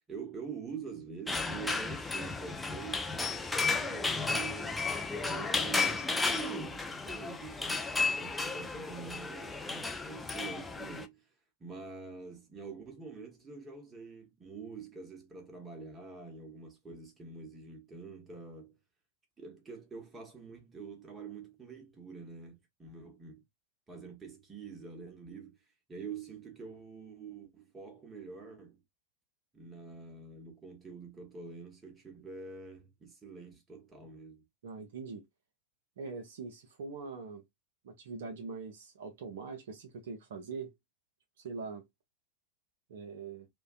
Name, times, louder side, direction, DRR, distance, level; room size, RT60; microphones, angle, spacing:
voice 1, 0.1-4.9 5.2-11.3 11.6-18.7 19.4-23.4 23.9-25.6 25.9-28.8 29.5-34.4, right 5 dB, 15° right, 0.9 m, -46 dB
sound 1, 1.3-11.0, left 3 dB, 5° left, 0.4 m, -33 dB
voice 2, 34.6-35.2 36.0-37.4 37.8-40.7 41.4-41.8 42.9-43.5, right 4 dB, 55° right, 0.5 m, -42 dB
2.5 x 2.2 x 2.3 m
figure-of-eight pair, 90°, 0 cm